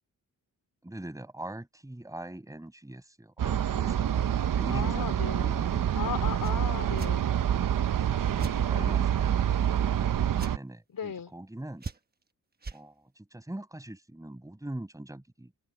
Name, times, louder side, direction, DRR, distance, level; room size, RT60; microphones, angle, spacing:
voice 1, 0.8-6.1 8.2-9.3 9.6-11.8 12.7-15.6, right 1 dB, 10° right, 7.1 m, -42 dB
sound 1, 3.4-10.6, right 10 dB, 65° right, 0.8 m, -27 dB
voice 2, 4.7-5.5 5.9-7.2 8.6-9.1 10.9-11.3, left 8 dB, 70° left, 3.7 m, -36 dB
sound 2, 6.4-6.6 7.0-7.2 8.4-8.6 10.4-10.6 11.8-12.2 12.6-12.8, right 4 dB, 25° right, 1.2 m, -38 dB
open air
wide cardioid pair, 155°, 35 cm